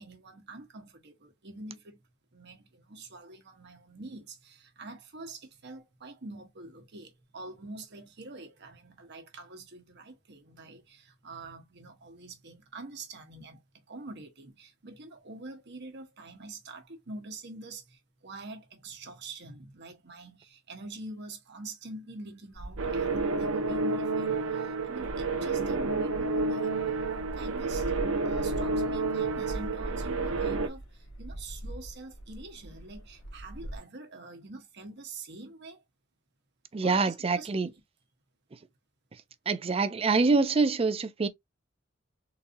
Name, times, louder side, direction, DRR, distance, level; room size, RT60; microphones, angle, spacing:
voice 1, 0.0-2.0 2.3-13.6 13.9-27.9 28.2-35.8 36.8-37.7, right 2 dB, 60° right, 1.1 m, -45 dB
sound 1, 22.5-33.8, right 1 dB, 80° left, 1.4 m, -42 dB
Strange Signal, 22.8-30.7, right 3 dB, 90° right, 0.7 m, -30 dB
voice 2, 36.7-37.7 39.5-41.3, right 4 dB, 30° right, 0.4 m, -25 dB
3.9 x 2.7 x 2.6 m
head